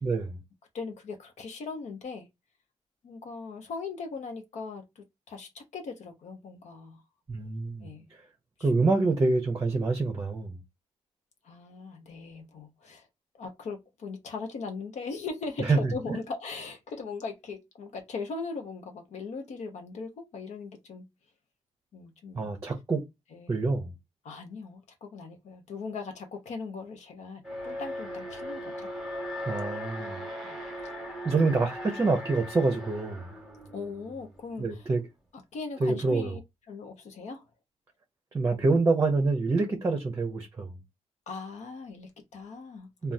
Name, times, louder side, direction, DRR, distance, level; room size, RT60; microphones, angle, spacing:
voice 1, 0.0-0.4 7.3-7.9 8.6-10.6 15.6-16.2 22.3-23.0 23.5-23.9 29.5-30.2 31.2-33.3 34.6-35.0 35.8-36.4 38.3-40.8 43.0-43.1, right 3 dB, 25° right, 0.6 m, -26 dB
voice 2, 0.7-2.3 3.0-7.0 7.8-8.1 8.6-8.7 11.4-13.1 13.3-21.1 21.9-22.5 23.3-23.6 24.2-28.9 30.4-30.7 33.7-34.9 35.3-36.4 36.7-37.4 41.3-42.9, left 4 dB, 75° left, 0.8 m, -39 dB
Alarm, 27.4-34.5, equal, 5° right, 1.1 m, -38 dB
3.5 x 2.3 x 2.6 m
wide cardioid pair, 135°, 12 cm